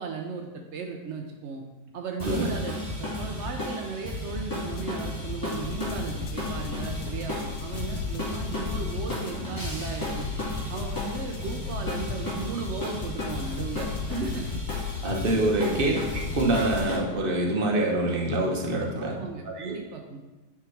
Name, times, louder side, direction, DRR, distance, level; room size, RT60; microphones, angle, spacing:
voice 1, 0.0-1.6 1.9-10.3 10.7-14.5 15.4-15.8 19.0-20.2, right 5 dB, 80° right, 3 dB, 0.6 m, -36 dB
sound 1, 2.2-17.0, left 1 dB, 10° left, 1.6 m, -33 dB
voice 2, 2.2-2.5 15.0-19.2 19.4-19.8, right 1 dB, 35° right, 0 dB, 1.0 m, -26 dB
sound 2, 4.8-17.0, left 9 dB, 80° left, 1.3 m, -38 dB
9.4 x 3.6 x 4.5 m, 1.1 s
omnidirectional pair, 2.0 m